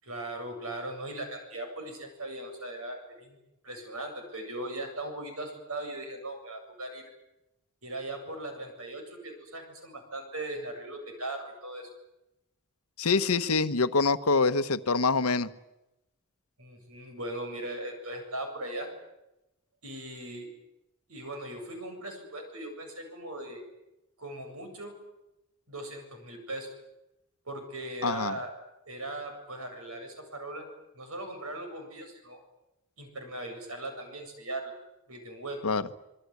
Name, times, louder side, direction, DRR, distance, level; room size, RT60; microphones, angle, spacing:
voice 1, 0.0-3.4 3.6-7.0 7.8-11.9 16.6-18.9 19.8-20.5 21.1-23.6 24.2-25.0 25.7-26.7 27.5-28.5 28.9-30.7 30.9-32.4 33.0-34.7 35.1-35.6, right 1 dB, 70° right, 5 dB, 7.9 m, -39 dB
voice 2, 13.0-15.5 28.0-28.3 35.6-35.9, left 4 dB, 80° left, 11 dB, 1.2 m, -25 dB
26.5 x 22.5 x 9.7 m, 0.93 s
head